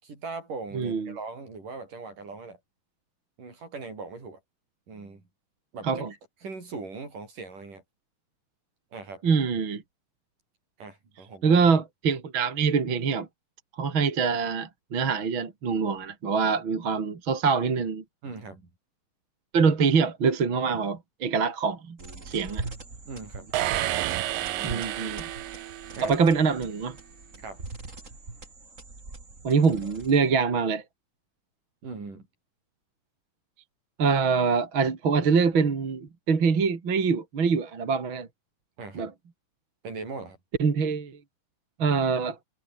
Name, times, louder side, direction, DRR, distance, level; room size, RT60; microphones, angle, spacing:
voice 1, 0.0-2.6 3.4-4.4 4.9-5.2 5.7-6.1 6.4-7.8 8.9-9.2 10.8-11.6 18.2-18.7 23.1-23.5 24.4-24.8 25.9-26.1 27.4-27.6 31.8-32.3 38.8-39.1 39.8-40.4, right 4 dB, 60° right, 8.7 m, -40 dB
voice 2, 0.7-1.2 5.8-6.1 9.2-9.8 11.4-13.3 13.8-18.0 19.5-22.0 22.3-22.6 24.6-25.2 26.0-27.0 29.4-30.8 34.0-38.3 38.9-39.1 40.6-41.2 41.8-42.4, right 5 dB, 35° right, 3.2 m, -24 dB
sound 1, 22.0-30.4, right 3 dB, 20° right, 3.5 m, -42 dB
sound 2, 23.5-26.4, right 14 dB, 75° right, 2.7 m, -30 dB
omnidirectional pair, 4.2 m